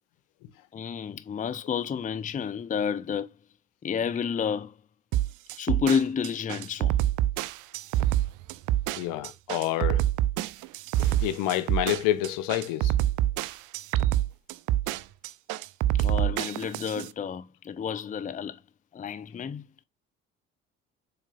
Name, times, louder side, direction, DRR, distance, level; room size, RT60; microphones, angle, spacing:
voice 1, 0.7-3.4 3.8-4.8 5.5-7.0 15.9-18.6 18.9-19.6, left 7 dB, 20° left, 0.6 m, -30 dB
sound 1, 5.1-17.1, right 13 dB, 55° right, 0.6 m, -26 dB
voice 2, 9.0-10.0 11.0-12.9, left 13 dB, 65° left, 0.8 m, -28 dB
7.3 x 5.1 x 2.5 m
figure-of-eight pair, 50°, 36 cm